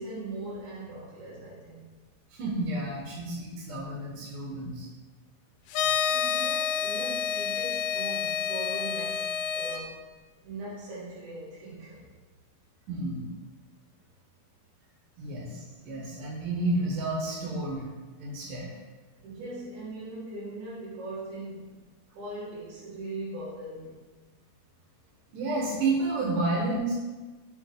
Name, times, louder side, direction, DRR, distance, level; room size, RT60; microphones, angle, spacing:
voice 1, 0.0-1.9 6.1-10.0 10.4-12.0 15.2-15.3 19.2-21.9 22.2-24.0, right 2 dB, 90° right, -10 dB, 3.3 m, -40 dB
voice 2, 2.3-4.9 12.9-13.3 15.2-17.9 18.2-18.7 25.3-26.9, right 2 dB, 70° right, -4 dB, 2.3 m, -30 dB
sound 1, 5.7-9.8, left 7 dB, 80° left, 2.2 m, -29 dB
7.0 x 2.8 x 5.0 m, 1.3 s
omnidirectional pair, 4.3 m